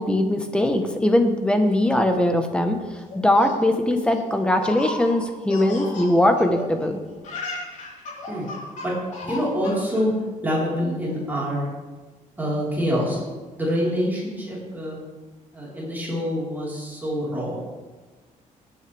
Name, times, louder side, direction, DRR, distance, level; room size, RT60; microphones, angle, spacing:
voice 1, 0.0-2.8 3.1-7.0, left 1 dB, 5° left, 6 dB, 1.1 m, -20 dB
Laughter, 3.1-6.9 7.2-10.0, left 2 dB, 65° left, 4.0 m, -35 dB
voice 2, 9.2-10.1 10.4-11.7 12.4-13.2 13.6-15.0 15.5-17.6, equal, 15° right, -7 dB, 4.3 m, -26 dB
19.0 x 9.1 x 3.5 m, 1.3 s
cardioid pair, 155°, 14 cm